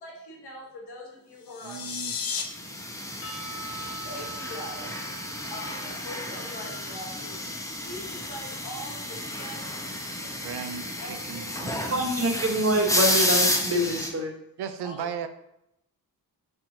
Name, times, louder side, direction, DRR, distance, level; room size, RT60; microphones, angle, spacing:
voice 1, 0.0-1.0 1.3-1.8 4.0-4.9 5.5-7.3 7.8-9.0 9.4-9.7 10.2-10.3 11.0-11.4 14.8-15.1, left 1 dB, 85° left, -1 dB, 1.3 m, -41 dB
sound 1, 1.4-2.4, left 6 dB, 60° left, 0.7 m, -33 dB
voice 2, 1.6-2.1 10.4-12.1 14.6-15.3, right 7 dB, 80° right, 9 dB, 0.5 m, -36 dB
sound 2, 2.5-14.1, left 1 dB, 10° left, 0.7 m, -31 dB
Percussion / Church bell, 3.2-7.2, right 2 dB, 35° left, 0.9 m, -43 dB
voice 3, 11.6-14.3, right 1 dB, 40° right, 2 dB, 0.9 m, -26 dB
5.6 x 3.5 x 2.7 m, 0.81 s
cardioid pair, 80°, 39 cm